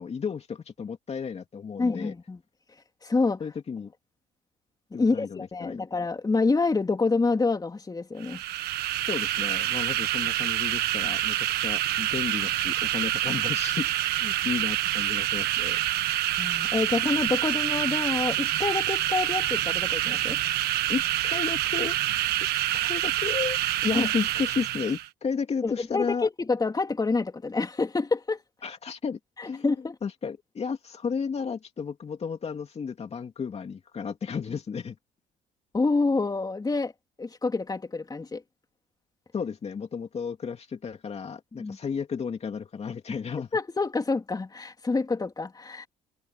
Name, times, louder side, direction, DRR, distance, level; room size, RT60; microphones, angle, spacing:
voice 1, 0.0-2.1 3.4-3.9 4.9-5.9 9.1-15.8 20.9-22.0 22.7-26.3 28.6-29.6 30.0-35.0 39.3-43.6, left 6 dB, 40° left, 2.7 m, -33 dB
voice 2, 1.8-2.4 3.0-3.4 4.9-8.4 16.4-20.4 23.9-24.1 25.6-28.4 29.4-29.9 35.7-36.9 37.2-38.4 41.5-41.8 43.5-45.9, left 3 dB, 25° left, 3.1 m, -27 dB
sound 1, 8.2-25.1, right 14 dB, 75° right, 1.4 m, -27 dB
supercardioid pair, 80°, 16 cm